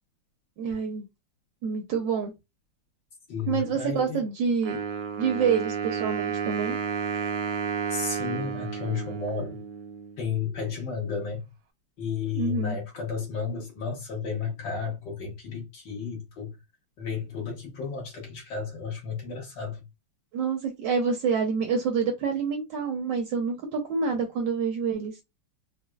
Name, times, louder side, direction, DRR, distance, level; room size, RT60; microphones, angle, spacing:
voice 1, 0.6-1.1 1.6-2.3 3.4-4.8 5.2-6.8 12.3-12.8 20.3-25.2, right 6 dB, 70° right, 1.1 m, -27 dB
voice 2, 3.3-4.2 7.9-9.6 10.2-11.4 12.0-16.5 17.0-19.8, left 6 dB, 60° left, 1.6 m, -32 dB
Wind instrument woodwind instrument, 4.6-10.3, right 6 dB, 90° right, 0.8 m, -32 dB
4.1 x 2.0 x 2.2 m
omnidirectional pair, 2.4 m